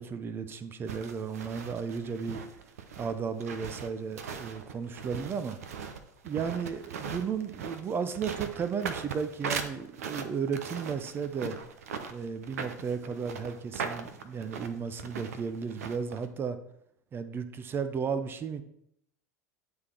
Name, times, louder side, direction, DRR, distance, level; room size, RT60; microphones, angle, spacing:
voice 1, 0.0-2.4 3.0-5.6 6.2-11.6 12.1-16.6 17.1-18.6, right 6 dB, 25° right, 11 dB, 0.7 m, -34 dB
sound 1, 0.9-16.3, right 6 dB, 65° right, 0.7 m, -39 dB
9.5 x 3.7 x 4.5 m, 0.74 s
figure-of-eight pair, 80°, 9 cm